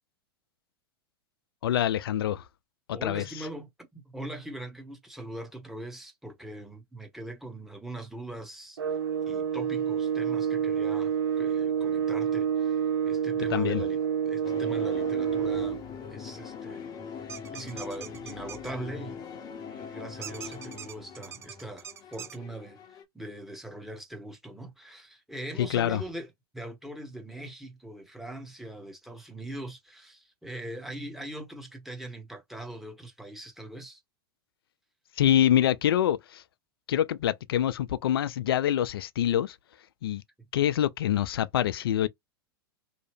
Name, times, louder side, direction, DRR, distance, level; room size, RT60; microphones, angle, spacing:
voice 1, 1.6-2.4 2.9-3.2 13.5-13.8 25.6-26.0 35.2-36.4 36.9-39.6 40.0-40.2 40.5-42.1, left 11 dB, 70° left, 0.4 m, -25 dB
voice 2, 2.9-9.0 9.3-14.0 14.2-15.8 16.1-17.0 17.2-19.2 19.6-34.0, right 1 dB, ahead, 1.0 m, -41 dB
sound 1, 8.8-15.8, right 8 dB, 70° right, 0.6 m, -28 dB
sound 2, 14.4-23.0, left 6 dB, 30° left, 0.6 m, -42 dB
sound 3, 17.3-18.7 20.2-22.4, right 8 dB, 20° right, 0.4 m, -43 dB
2.7 x 2.0 x 3.1 m
figure-of-eight pair, 95°, 13 cm